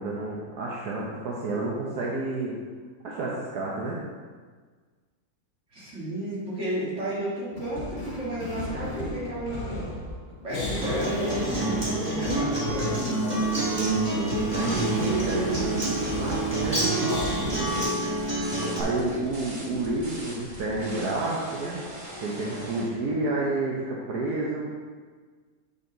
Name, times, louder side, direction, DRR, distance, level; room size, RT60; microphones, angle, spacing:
voice 1, 0.0-2.5 3.0-4.0 13.8-18.0 18.8-21.8 22.2-24.7, right 2 dB, 80° right, -4 dB, 1.5 m, -30 dB
voice 2, 5.7-9.9 10.4-13.5, right 1 dB, 45° right, -7 dB, 2.6 m, -32 dB
sound 1, 7.5-17.8, left 1 dB, 60° left, 2.5 m, -35 dB
Acoustic guitar, 10.8-18.8, right 2 dB, 15° right, 1.6 m, -28 dB
sound 2, 14.4-22.9, right 1 dB, 30° right, 1.5 m, -41 dB
8.1 x 5.4 x 3.9 m, 1.5 s
omnidirectional pair, 1.7 m